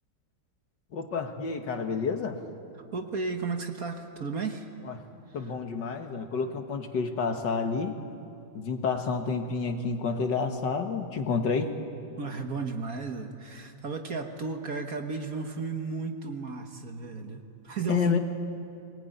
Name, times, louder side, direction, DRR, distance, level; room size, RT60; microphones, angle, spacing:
voice 1, 0.9-2.4 5.3-7.9 8.5-11.7 17.9-18.2, left 5 dB, 60° left, 5 dB, 2.0 m, -29 dB
voice 2, 2.7-4.7 5.4-5.6 12.2-18.2, right 4 dB, 50° right, 5 dB, 1.7 m, -34 dB
23.0 x 20.0 x 9.3 m, 2.6 s
omnidirectional pair, 2.2 m